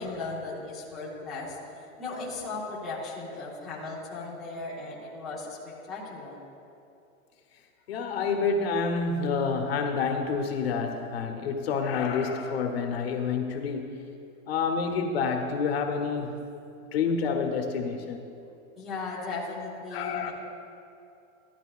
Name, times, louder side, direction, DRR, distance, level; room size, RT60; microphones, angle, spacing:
voice 1, 0.0-1.6 2.0-6.4 18.8-20.3, left 3 dB, ahead, -11 dB, 0.7 m, -37 dB
voice 2, 7.9-13.8 14.5-16.4 16.9-18.2 19.9-20.3, left 5 dB, 50° left, 4 dB, 1.1 m, -28 dB
15.0 x 12.0 x 2.4 m, 2.7 s
supercardioid pair, 175°, 40 cm